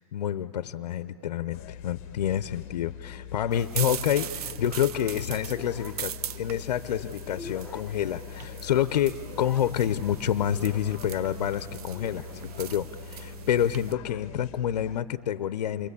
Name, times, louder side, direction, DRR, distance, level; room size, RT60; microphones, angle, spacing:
voice 1, 0.0-15.9, left 10 dB, 80° left, 14 dB, 0.6 m, -28 dB
sound 1, 1.5-15.0, left 12 dB, 35° left, 0.9 m, -44 dB
sound 2, 3.5-13.9, right 10 dB, 70° right, 0.7 m, -40 dB
sound 3, 5.4-13.4, left 2 dB, 5° left, 0.9 m, -49 dB
29.0 x 21.0 x 8.3 m, 2.7 s
hypercardioid pair, 145°, 20 cm